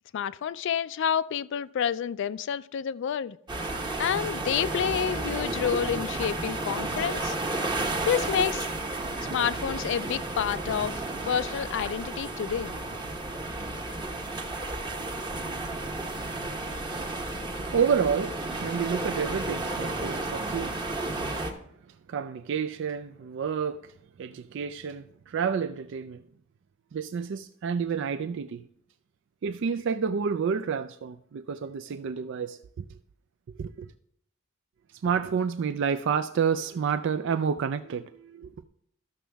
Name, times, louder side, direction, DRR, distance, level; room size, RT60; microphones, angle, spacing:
voice 1, 0.1-3.4 4.0-7.4 8.1-8.7 9.3-12.7, left 8 dB, 60° left, 0.3 m, -29 dB
sound 1, 3.5-21.5, right 2 dB, 20° right, 0.9 m, -32 dB
voice 2, 17.7-20.9 21.9-23.9 24.2-26.2 26.9-28.7 29.4-32.8 33.6-33.9 34.9-38.5, right 6 dB, 60° right, 0.3 m, -29 dB
13.0 x 6.2 x 3.4 m
head